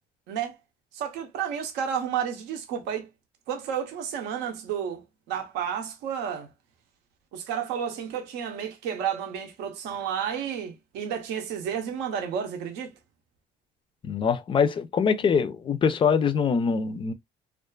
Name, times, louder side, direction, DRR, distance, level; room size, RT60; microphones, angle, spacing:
voice 1, 0.9-3.1 3.5-6.5 7.3-12.9, right 8 dB, 90° right, 0.6 m, -31 dB
voice 2, 14.0-17.1, left 6 dB, 30° left, 0.4 m, -23 dB
2.4 x 2.3 x 2.2 m
cardioid pair, 110°, 17 cm